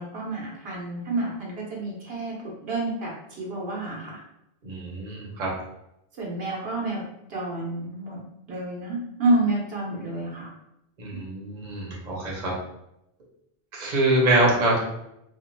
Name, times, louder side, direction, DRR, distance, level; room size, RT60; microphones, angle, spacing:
voice 1, 0.0-2.3 2.6-4.2 6.2-7.0 7.3-8.2 8.5-10.5 11.1-11.2, right 2 dB, 75° right, -3 dB, 1.0 m, -29 dB
voice 2, 4.6-5.5 11.0-12.5 13.7-14.8, right 1 dB, 45° right, -4 dB, 0.9 m, -24 dB
2.8 x 2.4 x 2.5 m, 0.83 s
omnidirectional pair, 1.0 m